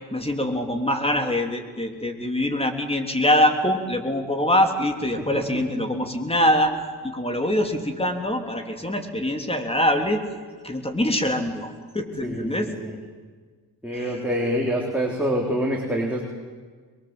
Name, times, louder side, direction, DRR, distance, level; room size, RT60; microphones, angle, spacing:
voice 1, 0.1-6.7 7.0-10.2 10.6-12.7 13.9-14.2, left 1 dB, 15° left, 5 dB, 3.2 m, -24 dB
voice 2, 5.2-5.9 12.2-12.9 13.8-16.2, equal, 5° right, -2 dB, 3.9 m, -26 dB
22.5 x 22.5 x 7.8 m, 1.5 s
cardioid pair, 70°, 38 cm